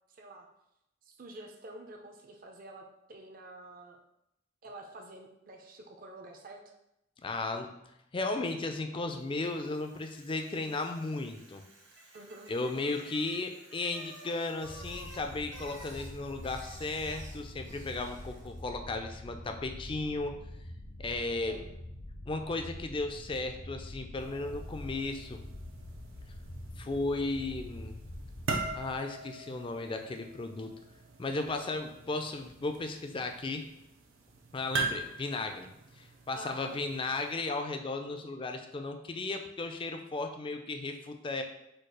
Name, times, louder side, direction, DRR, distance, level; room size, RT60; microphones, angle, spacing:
voice 1, 0.1-0.5 1.0-4.0 4.6-6.6 12.1-12.5 21.4-21.7 36.3-36.8, right 2 dB, 45° right, 2 dB, 0.6 m, -48 dB
voice 2, 7.2-7.7 8.1-11.6 12.5-20.3 21.0-21.6 22.3-25.4 26.8-28.0 28.7-30.7 31.2-33.7 34.5-35.7 36.0-41.4, left 3 dB, 25° left, 5 dB, 0.4 m, -35 dB
Bicycle, 9.3-18.7, right 1 dB, 60° right, 1.3 m, -54 dB
sound 1, 14.6-29.0, left 1 dB, 75° left, 0.7 m, -45 dB
sound 2, 24.2-37.3, right 4 dB, 85° right, 0.7 m, -42 dB
4.4 x 2.4 x 4.7 m, 0.83 s
head